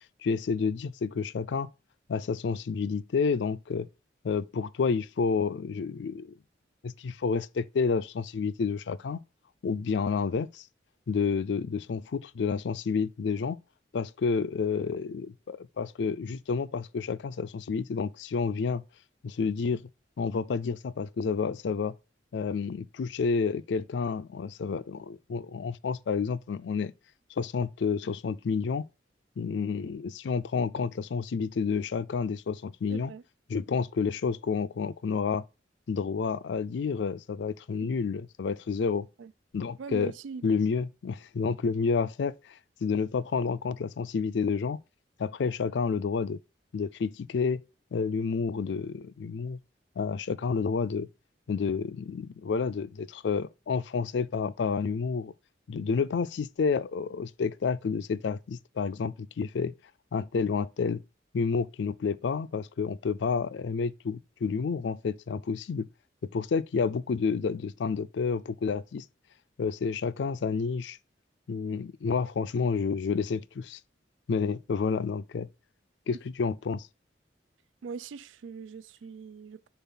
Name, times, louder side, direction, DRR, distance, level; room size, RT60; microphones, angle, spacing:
voice 1, 0.2-1.7 2.1-3.9 4.2-6.3 6.8-9.2 9.6-10.7 11.1-13.6 13.9-18.8 19.2-19.8 20.2-21.9 22.3-26.9 27.4-28.9 29.4-33.1 33.5-35.4 35.9-39.1 39.5-40.1 40.4-44.8 45.2-46.4 46.7-47.6 47.9-49.6 50.0-51.1 51.5-55.3 55.7-59.7 60.1-61.0 61.3-65.9 66.3-69.0 69.6-71.0 71.5-73.8 74.3-75.5 76.1-76.9, left 5 dB, 65° left, 0.4 m, -30 dB
voice 2, 32.9-33.2 37.8-37.9 39.2-39.3 39.8-40.4 77.8-79.7, right 5 dB, 90° right, 0.4 m, -41 dB
7.0 x 2.4 x 5.6 m
head